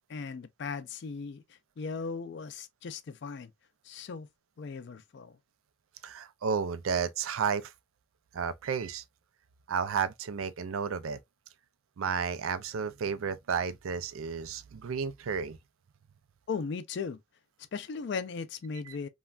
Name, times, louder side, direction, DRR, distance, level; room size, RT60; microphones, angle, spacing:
voice 1, 0.1-1.4 1.8-3.5 3.8-4.3 4.6-5.4 16.5-17.2 17.7-19.1, left 5 dB, 55° left, 0.4 m, -37 dB
voice 2, 6.0-7.7 8.3-9.0 9.7-11.2 12.0-15.6, right 6 dB, 90° right, 0.4 m, -32 dB
3.2 x 2.2 x 2.4 m
head